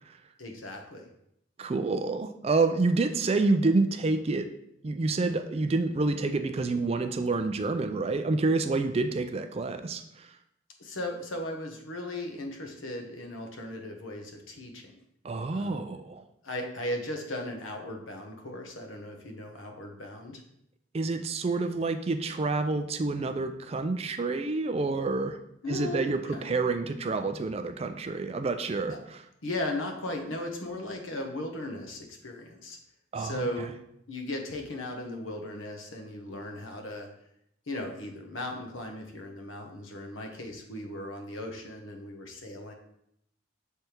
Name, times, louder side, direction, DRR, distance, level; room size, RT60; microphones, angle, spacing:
voice 1, 0.4-1.0 10.8-14.9 15.5-15.8 16.4-20.4 25.6-26.5 28.9-29.0 29.4-32.8 33.2-33.7 34.1-37.1 37.7-42.7, left 1 dB, 80° left, 3 dB, 1.0 m, -37 dB
voice 2, 1.6-4.5 4.8-10.3 15.2-16.2 20.9-25.4 25.7-29.2 33.1-33.5, right 3 dB, 30° right, 8 dB, 0.3 m, -28 dB
6.5 x 3.4 x 4.5 m, 0.76 s
head